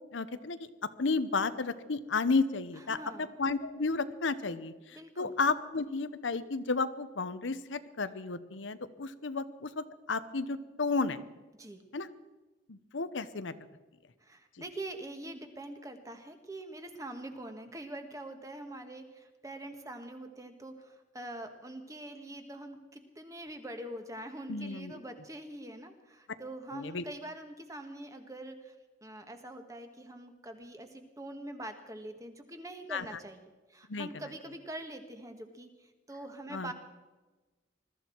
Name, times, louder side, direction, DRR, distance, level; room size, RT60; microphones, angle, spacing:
voice 1, 0.1-0.7 1.0-11.2 11.9-12.1 12.7-13.5 24.5-25.0 26.7-27.0 32.9-33.2 33.9-34.3 36.5-36.7, left 4 dB, 85° left, 12 dB, 0.9 m, -33 dB
voice 2, 2.9-3.3 4.9-5.3 11.6-11.8 14.2-28.7 29.0-35.7 36.1-36.7, right 1 dB, 15° right, 6 dB, 1.4 m, -44 dB
21.5 x 13.5 x 4.5 m, 1.2 s
head